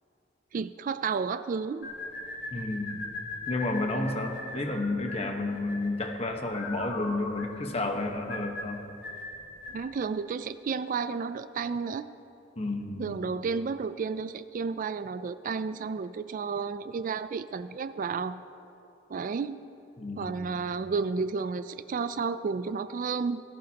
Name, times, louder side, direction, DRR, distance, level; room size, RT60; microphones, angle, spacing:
voice 1, 0.5-1.9 9.7-12.1 13.0-18.4 19.1-19.6 20.2-23.4, right 5 dB, 45° right, 13 dB, 0.3 m, -32 dB
sound 1, 1.8-9.8, left 2 dB, 65° left, 2.6 m, -40 dB
voice 2, 2.5-3.0 3.5-8.8 12.6-13.2 20.0-20.6, left 2 dB, 35° left, 3 dB, 1.2 m, -31 dB
18.5 x 16.5 x 2.9 m, 2.8 s
head